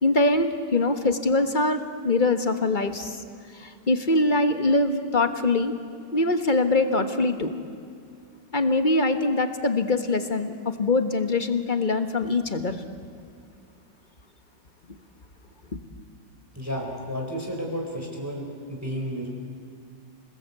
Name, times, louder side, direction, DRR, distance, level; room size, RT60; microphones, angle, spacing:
voice 1, 0.0-3.2 3.5-5.7 6.1-7.6 8.5-12.8, left 2 dB, 30° left, 8 dB, 1.3 m, -23 dB
voice 2, 16.5-19.3, equal, 10° right, 0 dB, 4.4 m, -32 dB
29.5 x 20.0 x 8.2 m, 2.3 s
omnidirectional pair, 2.0 m